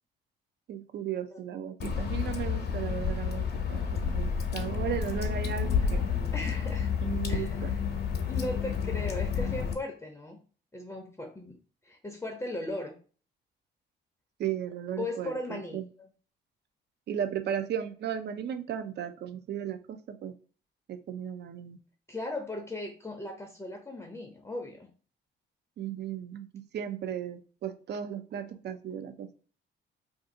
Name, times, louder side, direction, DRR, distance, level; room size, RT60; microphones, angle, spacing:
voice 1, 0.7-6.1 7.0-7.7 14.4-15.9 17.1-20.3 20.9-21.8 25.8-29.3, right 9 dB, 60° right, 9 dB, 0.5 m, -35 dB
Water / Drip, 1.8-9.7, left 6 dB, 55° left, 0.7 m, -30 dB
voice 2, 6.3-6.9 7.2-7.8 8.2-10.4 10.7-11.6 11.8-13.0 15.0-15.8 22.1-24.9, left 1 dB, 15° left, 2 dB, 0.6 m, -37 dB
2.6 x 2.5 x 3.7 m, 0.38 s
cardioid pair, 90°, 20 cm